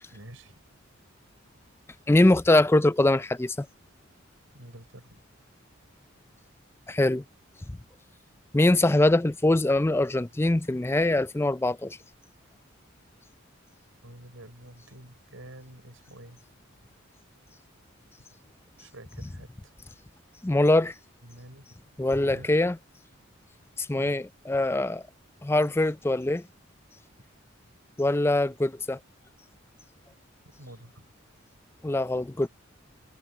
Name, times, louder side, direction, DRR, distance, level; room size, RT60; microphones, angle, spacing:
voice 1, 0.1-0.6 4.5-5.2 14.0-16.4 18.8-19.7 21.2-21.7 22.3-22.5 23.9-24.2 25.5-25.7 30.6-31.0, right 1 dB, 75° right, 5.5 m, -48 dB
voice 2, 2.1-3.7 6.9-7.2 7.7-7.8 8.5-12.0 20.4-20.9 22.0-22.8 23.8-25.0 25.4-26.4 28.0-29.0 31.8-32.5, left 2 dB, 10° left, 0.4 m, -23 dB
head